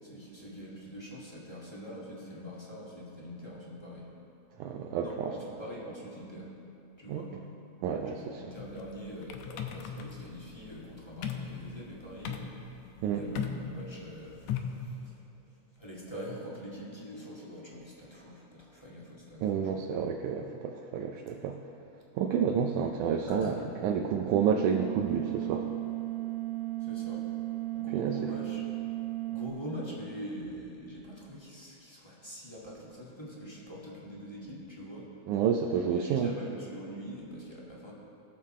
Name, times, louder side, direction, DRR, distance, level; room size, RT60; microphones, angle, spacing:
voice 1, 0.0-4.1 5.0-6.5 7.0-7.3 8.2-15.2 15.7-19.9 23.3-23.7 26.8-27.2 27.7-28.6 29.3-35.3 35.8-37.9, equal, 10° left, -6 dB, 1.3 m, -44 dB
voice 2, 4.6-5.3 7.1-7.2 7.8-8.4 13.0-13.2 19.4-21.6 22.2-23.5 23.8-25.7 27.9-28.2 35.3-36.3, right 7 dB, 80° right, 3 dB, 2.0 m, -29 dB
sound 1, 8.6-14.9, left 8 dB, 75° left, 1.8 m, -38 dB
sound 2, 24.3-29.5, right 17 dB, 60° right, 1.7 m, -35 dB
19.5 x 7.0 x 4.3 m, 2.8 s
omnidirectional pair, 3.6 m